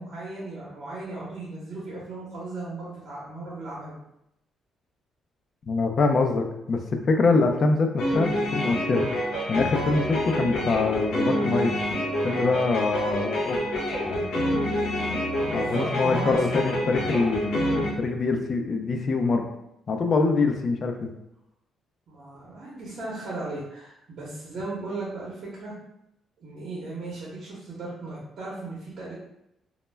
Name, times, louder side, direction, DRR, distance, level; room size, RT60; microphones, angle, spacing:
voice 1, 0.0-3.9 15.3-16.4 22.1-25.7 26.4-29.1, right 2 dB, 60° right, -6 dB, 0.8 m, -36 dB
voice 2, 5.7-9.1 9.5-11.7 12.2-13.6 14.1-14.6 15.4-19.5 19.9-21.1, left 3 dB, 50° left, 5 dB, 0.4 m, -24 dB
sound 1, 8.0-17.9, equal, 90° left, 0.7 m, -27 dB
2.1 x 2.1 x 3.3 m, 0.83 s
cardioid pair, 90°, 0 cm